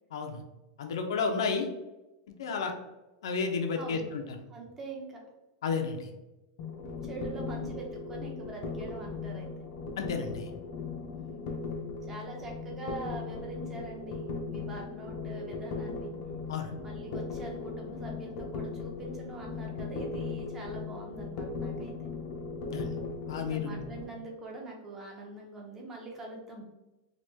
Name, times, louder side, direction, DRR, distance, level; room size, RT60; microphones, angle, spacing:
voice 1, 0.1-0.4 0.8-1.7 2.4-2.7 3.2-4.2 5.6-6.1 10.0-10.5 16.5-16.7 22.7-22.9 23.3-23.8, left 5 dB, 85° left, 4 dB, 0.5 m, -31 dB
voice 2, 3.7-4.1 4.5-5.2 7.0-9.5 11.1-11.5 12.0-16.1 16.8-21.9 23.3-26.6, right 3 dB, 15° right, -1 dB, 0.5 m, -43 dB
sound 1, 6.6-24.0, left 4 dB, 40° left, 0.4 m, -38 dB
2.9 x 2.2 x 3.2 m, 1.0 s
supercardioid pair, 175°, 2 cm